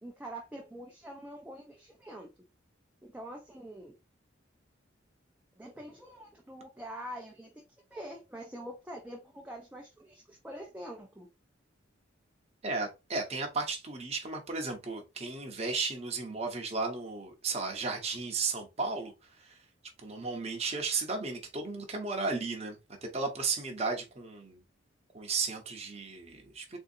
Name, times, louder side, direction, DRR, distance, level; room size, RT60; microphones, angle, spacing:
voice 1, 0.0-2.3 3.0-3.9 5.6-7.6 7.9-11.3, right 1 dB, 5° right, 0.5 m, -45 dB
voice 2, 12.6-19.6 20.0-24.6 25.1-26.8, right 4 dB, 30° right, 0.8 m, -34 dB
3.8 x 2.6 x 2.6 m
head